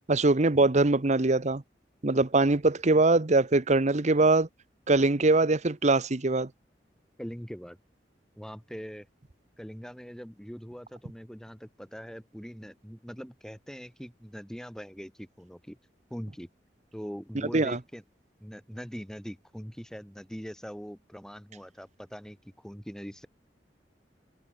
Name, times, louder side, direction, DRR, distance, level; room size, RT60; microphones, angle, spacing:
voice 1, 0.1-1.6 2.0-4.5 4.9-6.5 17.5-17.8, right 2 dB, 40° right, 1.0 m, -22 dB
voice 2, 7.2-7.8 8.4-9.1 9.6-15.8 16.1-16.5 16.9-18.0 18.4-23.3, equal, 5° left, 7.6 m, -42 dB
head